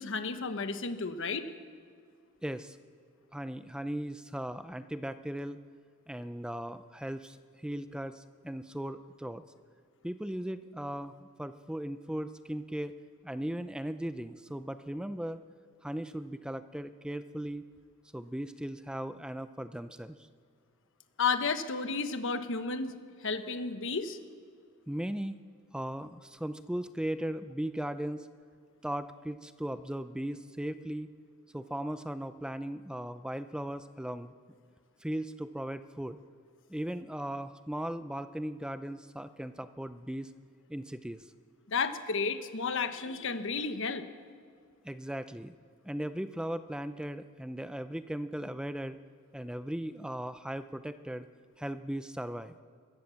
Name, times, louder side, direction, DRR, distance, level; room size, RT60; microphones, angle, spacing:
voice 1, 0.0-1.4 21.2-22.9 23.2-24.2 41.7-44.0, left 4 dB, 60° left, 9 dB, 1.2 m, -32 dB
voice 2, 2.4-2.8 3.3-5.6 6.1-9.4 10.0-12.9 13.2-15.4 15.8-17.6 18.1-20.2 24.9-25.4 25.7-28.3 28.8-31.1 31.5-34.3 35.0-36.2 36.7-40.3 40.7-41.3 44.8-45.5 45.8-49.0 49.3-51.3 51.6-52.6, right 1 dB, 5° right, 11 dB, 0.4 m, -37 dB
24.0 x 15.5 x 7.1 m, 2.2 s
head